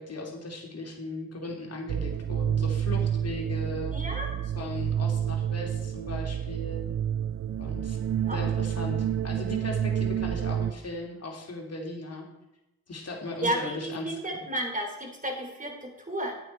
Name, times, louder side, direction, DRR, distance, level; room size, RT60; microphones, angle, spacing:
voice 1, 0.0-4.0 4.6-6.9 7.6-12.3 12.9-14.2, left 2 dB, 45° left, 1 dB, 3.0 m, -37 dB
sound 1, 1.9-10.7, right 9 dB, 40° right, 0.5 m, -29 dB
voice 2, 3.9-4.3 8.3-8.5 13.4-16.4, right 1 dB, 20° right, 2 dB, 3.3 m, -32 dB
9.6 x 9.0 x 4.5 m, 0.96 s
supercardioid pair, 50°, 36 cm